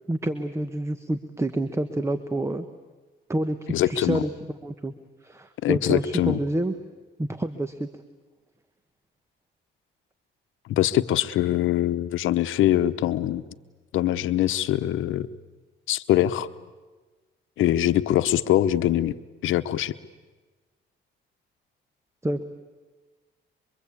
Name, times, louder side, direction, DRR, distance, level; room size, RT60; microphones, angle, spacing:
voice 1, 0.1-2.7 3.3-3.6 3.9-4.3 4.6-4.9 5.2-6.7 7.2-7.9 22.2-22.4, right 1 dB, 15° right, 10 dB, 1.2 m, -28 dB
voice 2, 3.7-4.2 5.6-6.4 10.7-13.4 13.9-15.3 15.9-16.5 17.6-19.1 19.4-19.9, left 13 dB, 80° left, 12 dB, 0.9 m, -23 dB
25.0 x 23.5 x 8.5 m, 1.3 s
cardioid pair, 90°, 20 cm